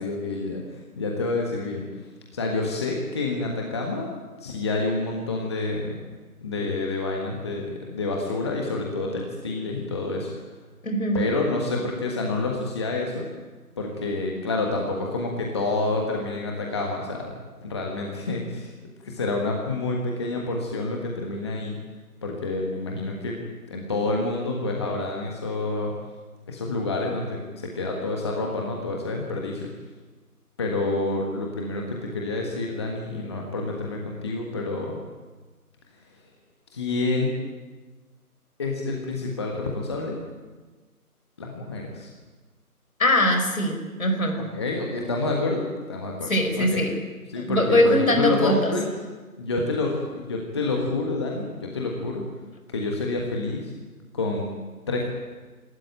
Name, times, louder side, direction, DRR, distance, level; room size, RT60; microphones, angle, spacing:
voice 1, 0.0-1.9 2.3-4.1 4.4-6.0 6.4-10.3 11.1-13.3 13.8-17.3 17.6-18.7 19.0-21.8 22.2-23.4 23.7-25.9 26.5-29.7 30.6-34.9 36.7-37.3 38.6-40.2 41.4-42.1 44.4-46.3 46.6-46.8 47.3-48.8 49.4-52.2 52.7-53.7 54.1-54.5 54.9-55.0, left 2 dB, 20° left, 0 dB, 1.5 m, -28 dB
voice 2, 10.8-11.2 43.0-44.4 46.3-47.0 47.4-48.7, left 1 dB, 60° left, 4 dB, 5.2 m, -22 dB
26.5 x 13.0 x 9.0 m, 1.3 s
figure-of-eight pair, 155°, 46 cm